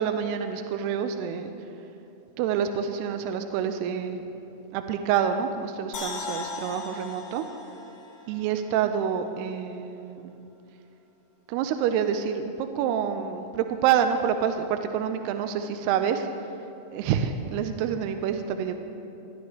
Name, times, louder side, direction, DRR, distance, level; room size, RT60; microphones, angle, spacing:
voice 1, 0.0-1.5 2.4-4.2 4.7-7.5 8.3-10.3 11.5-16.3 16.9-18.8, right 8 dB, 85° right, 7 dB, 2.6 m, -27 dB
sound 1, 5.9-9.1 9.5-9.6, left 4 dB, 60° left, 2.1 m, -38 dB
22.0 x 11.0 x 3.1 m, 2.8 s
omnidirectional pair, 4.8 m